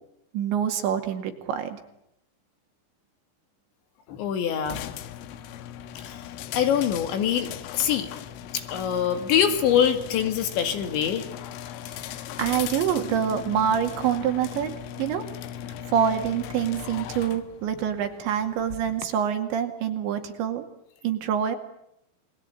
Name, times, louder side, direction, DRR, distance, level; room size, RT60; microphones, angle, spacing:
voice 1, 0.3-1.8 12.4-15.3 15.9-20.6 21.0-21.6, right 8 dB, 70° right, 6 dB, 4.4 m, -26 dB
voice 2, 4.1-4.8 6.0-6.2 6.5-8.1 8.5-11.3, left 9 dB, 70° left, 9 dB, 4.2 m, -24 dB
sound 1, 4.7-19.1, left 10 dB, 85° left, 3.9 m, -38 dB
28.5 x 21.5 x 9.2 m, 0.78 s
omnidirectional pair, 5.6 m